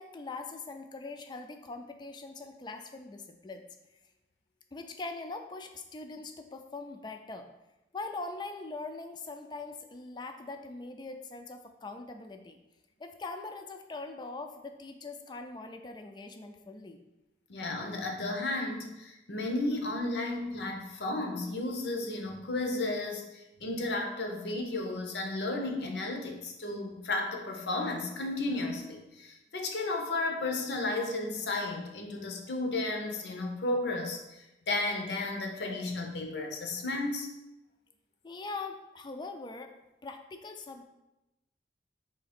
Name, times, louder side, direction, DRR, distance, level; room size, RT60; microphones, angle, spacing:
voice 1, 0.0-3.6 4.7-7.5 7.9-12.6 13.0-17.0 38.2-39.7 40.0-40.9, left 3 dB, 25° left, 6 dB, 0.3 m, -42 dB
voice 2, 17.5-37.3, left 2 dB, 70° left, 3 dB, 0.7 m, -33 dB
3.8 x 3.3 x 4.2 m, 0.95 s
head